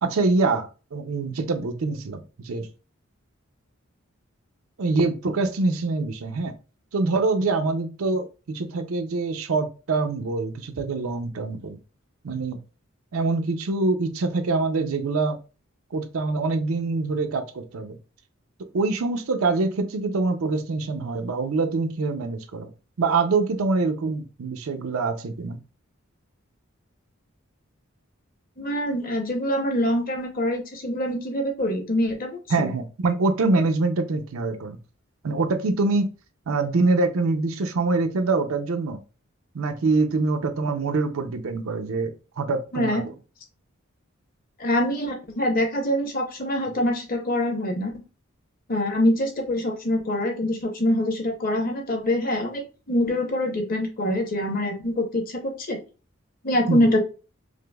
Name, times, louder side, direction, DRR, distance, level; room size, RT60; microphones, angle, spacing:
voice 1, 0.0-2.7 4.8-6.5 6.9-11.8 12.2-12.6 13.1-15.4 15.9-18.0 18.7-22.7 23.0-25.6 32.5-34.8 35.2-36.1 36.5-39.0 39.5-43.0 56.7-56.9, right 3 dB, 80° right, 0.5 m, -25 dB
voice 2, 28.6-32.7 42.7-43.1 44.6-47.9 48.7-55.8 56.4-57.0, left 1 dB, 40° left, 0.7 m, -25 dB
4.9 x 2.0 x 2.2 m
head